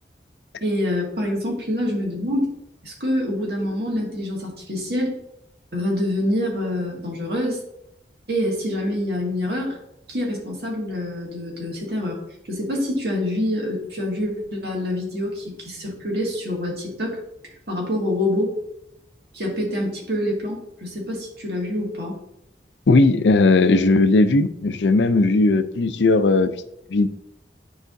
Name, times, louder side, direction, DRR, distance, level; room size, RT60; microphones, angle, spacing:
voice 1, 0.6-2.5 2.8-5.2 5.7-7.6 8.3-9.8 10.1-12.2 12.5-17.2 17.7-18.6 19.3-22.2, left 1 dB, 65° right, -1 dB, 2.0 m, -26 dB
voice 2, 22.9-26.5 26.9-27.1, left 3 dB, 85° left, 12 dB, 0.5 m, -17 dB
10.5 x 4.8 x 2.7 m, 0.78 s
head